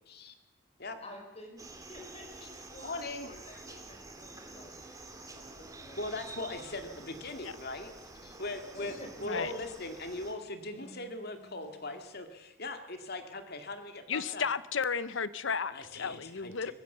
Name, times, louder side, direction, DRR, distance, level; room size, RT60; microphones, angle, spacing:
voice 1, 1.0-6.5 8.7-9.6 10.7-10.9, left 1 dB, 30° left, 3 dB, 4.7 m, -50 dB
sound 1, 1.6-10.3, right 2 dB, 20° right, 2.4 m, -49 dB
voice 2, 2.8-3.3 3.5-3.6 6.0-7.9 8.2-8.9 9.2-14.5 15.7-16.7, left 2 dB, 55° left, 6 dB, 2.3 m, -40 dB
sound 2, 4.3-12.2, right 2 dB, 35° right, 6.9 m, -61 dB
voice 3, 14.1-16.7, left 6 dB, 70° left, 16 dB, 0.8 m, -33 dB
24.5 x 15.5 x 6.9 m, 0.97 s
head